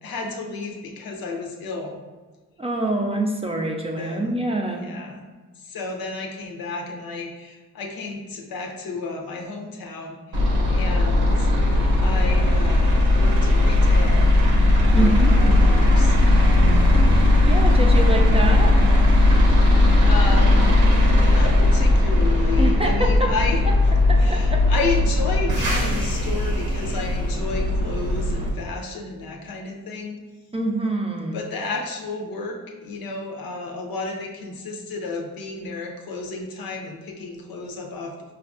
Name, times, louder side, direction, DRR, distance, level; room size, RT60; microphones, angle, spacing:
voice 1, 0.0-2.0 4.0-4.4 4.7-5.2 5.6-11.5 12.0-14.3 14.9-16.2 20.1-20.7 21.3-23.6 24.2-30.2 31.3-38.1, left 3 dB, 75° left, 1 dB, 0.6 m, -32 dB
voice 2, 2.6-4.9 14.9-15.6 17.5-18.7 22.6-23.3 24.1-24.6 30.5-31.4, right 2 dB, 15° right, 1 dB, 0.4 m, -25 dB
sound 1, 10.3-28.5, left 2 dB, 85° right, 0.8 m, -17 dB
4.4 x 2.4 x 2.4 m, 1.3 s
cardioid pair, 70°, 35 cm